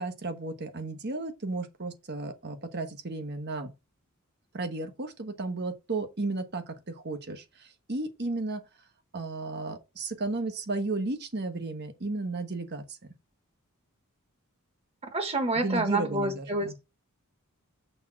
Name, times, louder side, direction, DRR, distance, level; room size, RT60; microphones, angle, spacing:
voice 1, 0.0-3.7 4.5-8.6 9.1-13.0 15.5-16.7, right 2 dB, 50° right, 1.2 m, -34 dB
voice 2, 15.1-16.7, right 2 dB, 25° right, 1.5 m, -28 dB
6.8 x 3.7 x 5.9 m
head